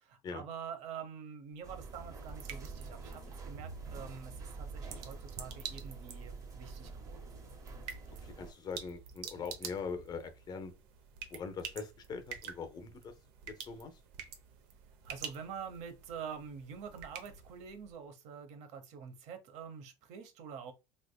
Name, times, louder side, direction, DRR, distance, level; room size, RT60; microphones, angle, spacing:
voice 1, 0.0-7.2 15.0-20.7, right 7 dB, 55° right, 0.9 m, -46 dB
sound 1, 1.5-17.9, right 7 dB, 80° right, 0.8 m, -49 dB
sound 2, 1.6-8.5, right 4 dB, 25° right, 0.7 m, -47 dB
voice 2, 8.2-10.7 11.3-13.1 13.4-14.0, left 5 dB, 30° left, 0.7 m, -42 dB
3.5 x 3.2 x 2.2 m
cardioid pair, 135°, 14 cm